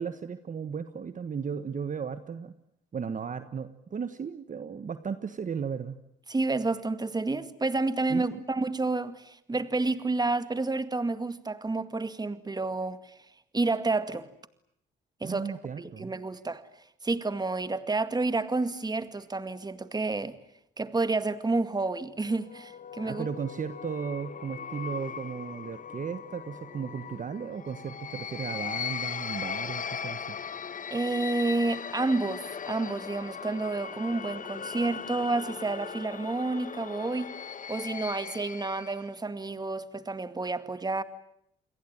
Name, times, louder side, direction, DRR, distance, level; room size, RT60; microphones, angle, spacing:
voice 1, 0.0-2.5 2.9-6.0 8.1-8.4 15.2-16.1 23.0-30.3, right 6 dB, 40° right, 1.5 m, -35 dB
voice 2, 6.3-13.1 13.5-14.3 15.2-15.4 15.8-16.6 17.0-20.4 20.8-23.3 30.9-37.3 37.7-41.0, right 3 dB, 20° right, 2.1 m, -30 dB
sound 1, 22.3-39.1, left 7 dB, 40° left, 1.2 m, -39 dB
29.0 x 22.0 x 9.0 m
cardioid pair, 90°, 20 cm